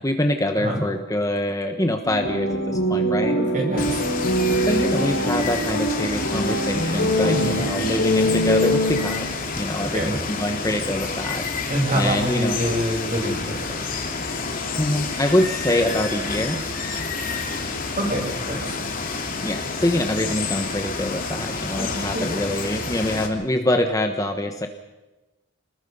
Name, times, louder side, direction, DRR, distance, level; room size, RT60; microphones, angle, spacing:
voice 1, 0.0-3.4 4.6-9.3 9.5-12.6 14.8-16.6 19.4-24.7, left 1 dB, 15° left, 5 dB, 1.2 m, -25 dB
sound 1, 2.0-9.3, equal, 70° left, 4.2 m, -23 dB
voice 2, 3.4-4.0 7.3-7.7 9.9-10.2 11.7-13.8 18.0-18.8 21.9-22.3, equal, 35° right, 0 dB, 7.6 m, -26 dB
Water, 3.8-23.3, left 4 dB, 40° left, 3.0 m, -29 dB
30.0 x 20.5 x 5.6 m, 1.1 s
head